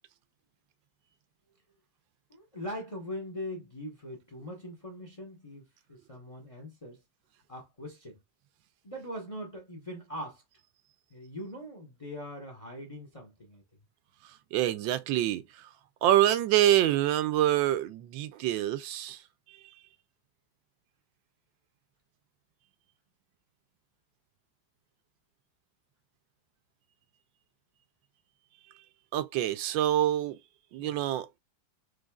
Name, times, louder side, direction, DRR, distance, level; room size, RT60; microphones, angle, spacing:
voice 1, 2.3-7.0 7.5-8.2 8.8-10.4 11.1-13.6 30.8-31.0, equal, 30° left, 0.6 m, -41 dB
voice 2, 14.5-15.7 16.0-19.2 19.5-19.6 29.1-30.4 30.7-31.3, right 12 dB, 85° right, 1.3 m, -26 dB
3.9 x 3.1 x 2.2 m
omnidirectional pair, 2.0 m